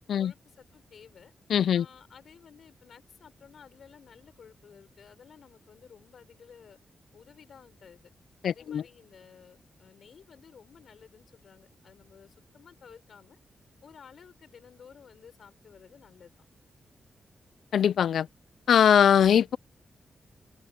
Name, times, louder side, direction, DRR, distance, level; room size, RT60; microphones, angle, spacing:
voice 1, 0.2-1.3 1.7-6.8 7.1-8.1 8.5-13.4 13.8-16.3, left 7 dB, 60° left, 4.6 m, -54 dB
voice 2, 1.5-1.9 8.4-8.8 17.7-18.3 18.7-19.6, left 8 dB, 90° left, 0.3 m, -21 dB
open air
wide cardioid pair, 170°, 0 cm